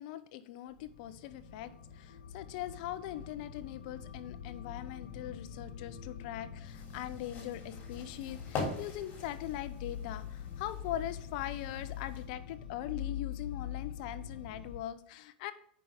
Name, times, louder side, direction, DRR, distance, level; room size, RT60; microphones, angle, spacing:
voice 1, 0.0-15.5, left 12 dB, 60° left, 13 dB, 0.8 m, -41 dB
sound 1, 0.8-14.8, left 9 dB, 85° left, 1.3 m, -44 dB
sound 2, 6.6-12.3, left 3 dB, 35° left, 3.3 m, -44 dB
8.6 x 5.7 x 5.0 m, 0.64 s
hypercardioid pair, 115°, 5 cm